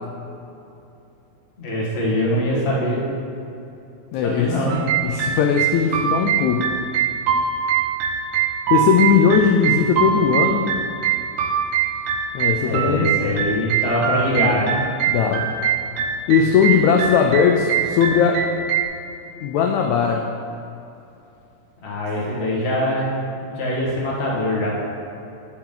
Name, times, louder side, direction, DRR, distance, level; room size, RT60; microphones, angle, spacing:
voice 1, 1.6-3.0 4.2-4.8 12.6-14.8 21.8-24.7, left 1 dB, 35° left, -5 dB, 1.0 m, -23 dB
voice 2, 4.1-4.8 5.0-6.7 8.7-10.7 12.3-13.1 15.1-15.5 16.3-18.4 19.4-20.3, left 6 dB, 85° left, 2 dB, 1.6 m, -18 dB
sound 1, 4.7-18.8, right 8 dB, 80° right, 1.6 m, -23 dB
11.5 x 5.8 x 3.9 m, 2.7 s
omnidirectional pair, 3.8 m